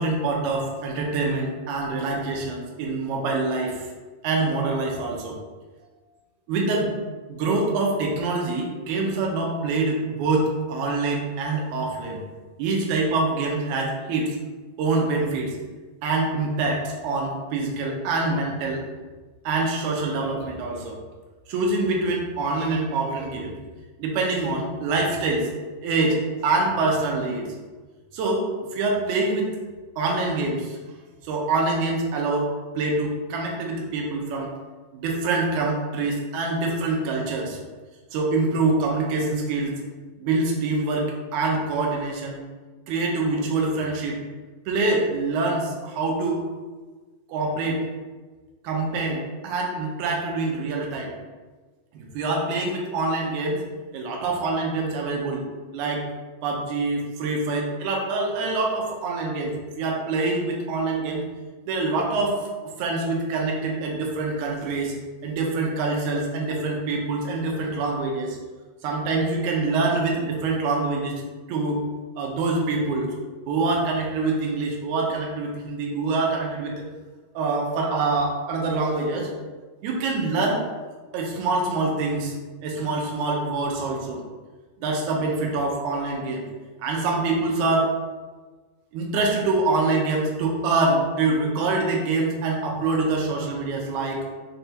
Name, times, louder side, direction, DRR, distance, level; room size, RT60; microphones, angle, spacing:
voice 1, 0.0-3.8 4.2-5.4 6.5-6.9 7.3-12.2 12.6-14.4 14.8-15.6 16.0-18.8 19.5-21.0 21.5-23.5 24.0-25.5 25.8-27.5 28.1-28.4 28.7-29.5 30.0-30.8 31.2-32.5 32.8-34.5 34.9-37.6 38.1-39.8 40.2-42.4 42.9-44.2 44.7-46.4 47.3-47.8 48.6-51.1 51.9-53.6 53.9-55.4 55.7-56.1 56.4-61.2 61.7-62.5 62.8-64.9 65.2-68.4 68.8-71.2 71.5-71.8 72.2-73.1 73.5-76.8 77.4-79.3 79.8-80.6 81.1-82.3 82.6-84.2 84.8-86.4 86.8-87.9 88.9-94.3, right 3 dB, 75° right, 0 dB, 1.9 m, -25 dB
5.4 x 2.3 x 2.7 m, 1.3 s
omnidirectional pair, 3.8 m